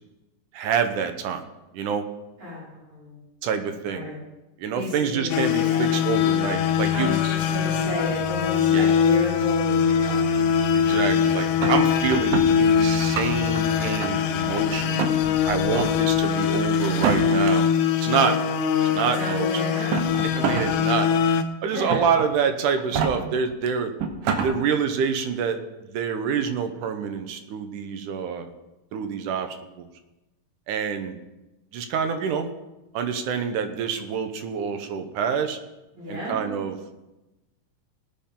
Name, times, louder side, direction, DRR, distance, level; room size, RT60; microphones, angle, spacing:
voice 1, 0.5-1.4 1.7-2.1 3.4-4.0 4.6-7.1 8.7-8.9 10.7-15.1 15.4-17.7 18.0-18.4 18.8-19.6 20.2-21.1 21.6-23.9 24.4-25.6 25.9-28.5 28.9-29.9 30.7-31.2 31.7-32.5 32.9-35.6 36.1-36.8, right 6 dB, 75° right, 7 dB, 2.3 m, -27 dB
voice 2, 2.4-3.2 3.8-4.2 4.7-5.3 5.6-6.0 6.9-10.3 18.1-18.3 19.1-20.7 21.6-22.0 35.9-36.6, left 1 dB, 55° right, -10 dB, 6.9 m, -33 dB
sound 1, 5.3-21.4, left 7 dB, 75° left, 2.3 m, -22 dB
sound 2, 6.1-17.5, left 1 dB, 40° left, 0.9 m, -40 dB
sound 3, 11.6-12.5 13.0-13.6 14.0-14.6 15.0-15.1 15.6-15.9 16.9-17.5 18.6-18.7 19.7-20.7 21.1-21.2 21.9-22.3 22.8-23.1 23.7-23.8 24.0-24.5, right 6 dB, 90° right, 2.9 m, -26 dB
19.5 x 8.7 x 3.8 m, 1.0 s
omnidirectional pair, 3.9 m